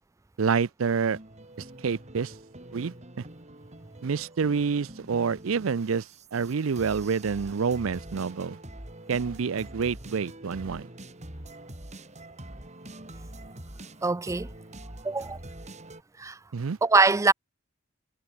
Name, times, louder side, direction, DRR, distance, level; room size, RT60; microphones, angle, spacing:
voice 1, 0.4-1.2 1.6-2.3 2.7-3.2 4.0-8.6 9.1-10.9 16.5-16.8, right 5 dB, 85° right, 0.5 m, -28 dB
sound 1, 0.8-16.0, right 1 dB, 35° right, 4.5 m, -45 dB
voice 2, 14.0-14.5 15.0-15.4 16.2-16.4 16.8-17.3, right 3 dB, 15° right, 0.4 m, -22 dB
head